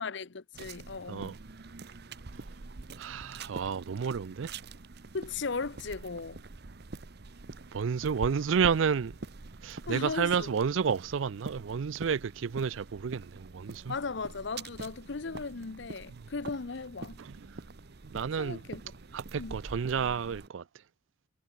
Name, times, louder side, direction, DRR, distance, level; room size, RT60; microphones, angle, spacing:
voice 1, 0.0-1.4 5.1-6.4 9.9-10.5 13.9-17.2 18.4-18.8 19.4-19.6, left 4 dB, 60° left, 0.8 m, -37 dB
sound 1, 0.5-20.5, right 3 dB, 55° right, 0.9 m, -45 dB
voice 2, 3.0-4.6 7.7-9.2 9.6-14.0 16.1-16.3 17.2-17.6 18.0-18.6 19.1-20.6, right 6 dB, 75° right, 0.4 m, -31 dB
head